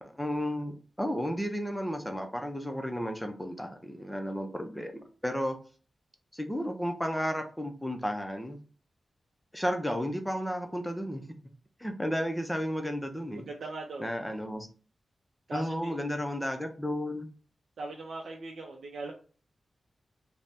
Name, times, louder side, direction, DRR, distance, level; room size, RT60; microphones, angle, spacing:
voice 1, 0.0-5.6 6.3-8.6 9.5-11.2 11.8-13.4 14.0-14.7 15.5-17.3, equal, 5° left, 0.5 m, -33 dB
voice 2, 13.4-14.2 15.5-16.0 17.8-19.1, right 2 dB, 80° right, 0.4 m, -40 dB
2.7 x 2.0 x 3.5 m
cardioid pair, 75°, 0 cm